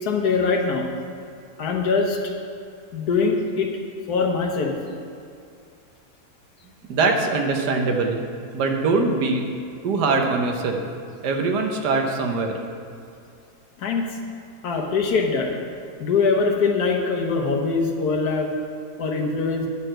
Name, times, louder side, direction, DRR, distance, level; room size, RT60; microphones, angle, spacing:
voice 1, 0.0-0.9 1.6-2.2 2.9-3.7 4.1-4.7 13.8-14.2 14.6-15.5 16.0-18.5 19.0-19.7, left 4 dB, 70° left, 2 dB, 1.5 m, -22 dB
voice 2, 6.9-8.2 8.5-9.5 9.8-10.8 11.2-12.6, right 3 dB, 85° right, 3 dB, 1.5 m, -22 dB
10.0 x 4.6 x 7.5 m, 2.5 s
omnidirectional pair, 1.7 m